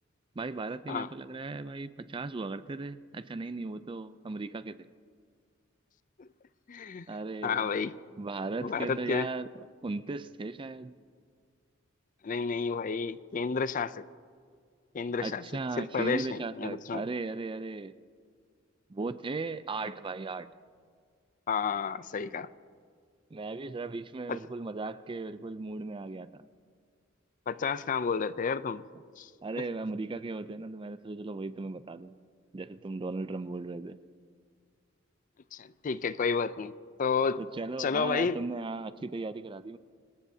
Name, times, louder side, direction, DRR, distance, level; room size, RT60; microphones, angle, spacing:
voice 1, 0.4-4.9 7.1-7.7 8.2-9.5 9.8-10.9 15.2-17.9 18.9-20.5 23.3-26.4 29.4-32.1 32.5-34.0 37.4-39.8, right 3 dB, 25° right, 13 dB, 0.4 m, -37 dB
voice 2, 6.7-7.1 7.4-8.0 8.6-9.3 12.2-14.0 14.9-15.4 15.8-17.0 21.5-22.5 24.3-24.4 27.5-28.8 29.2-29.3 35.5-36.7 37.0-37.4 37.8-38.4, left 5 dB, 40° left, 15 dB, 0.4 m, -31 dB
26.0 x 20.0 x 2.8 m, 2.1 s
head